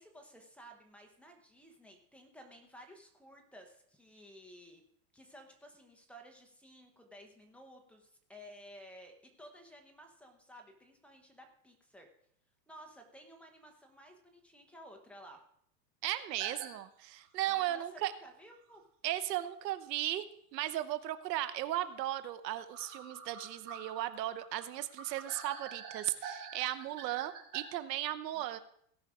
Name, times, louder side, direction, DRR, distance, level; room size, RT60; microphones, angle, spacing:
voice 1, 0.0-4.8 5.1-12.1 12.7-15.4 17.4-18.8 28.3-28.6, equal, 5° left, 2 dB, 0.8 m, -55 dB
voice 2, 16.0-18.1 19.0-20.2 20.5-28.6, right 13 dB, 85° right, 13 dB, 1.0 m, -36 dB
sound 1, 16.4-16.7 17.2-17.3 18.7-18.8 19.4-19.5 19.8-19.9 22.7-27.6, right 6 dB, 40° right, 2.9 m, -47 dB
17.0 x 5.8 x 4.8 m, 0.68 s
supercardioid pair, 160°, 48 cm